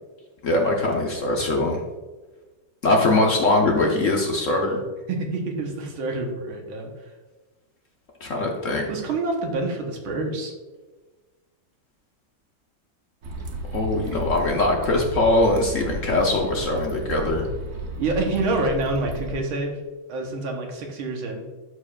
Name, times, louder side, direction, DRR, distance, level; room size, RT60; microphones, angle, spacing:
voice 1, 0.4-1.8 2.8-4.8 8.2-8.9 13.7-17.5, left 2 dB, 55° left, 0 dB, 0.9 m, -22 dB
voice 2, 5.1-7.1 8.9-10.5 18.0-19.8 20.1-21.4, right 2 dB, 70° right, 2 dB, 1.9 m, -27 dB
sound 1, 13.2-19.4, right 2 dB, 55° right, 1.0 m, -33 dB
12.0 x 5.0 x 2.5 m, 1.3 s
omnidirectional pair, 2.4 m